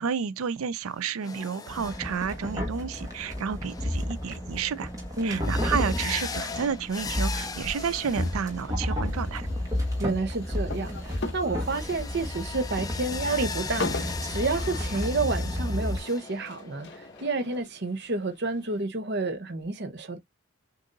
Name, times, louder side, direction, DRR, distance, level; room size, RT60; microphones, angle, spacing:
voice 1, 0.0-4.9 5.2-9.5, right 6 dB, 90° right, 0.5 m, -31 dB
sound 1, 0.9-17.6, left 4 dB, 20° left, 0.4 m, -40 dB
sound 2, 1.7-16.0, left 1 dB, 15° right, 1.1 m, -32 dB
voice 2, 5.2-5.6 10.0-20.2, right 3 dB, 55° right, 0.8 m, -30 dB
sound 3, 5.9-18.8, left 3 dB, 55° left, 0.8 m, -42 dB
6.5 x 2.6 x 2.5 m
head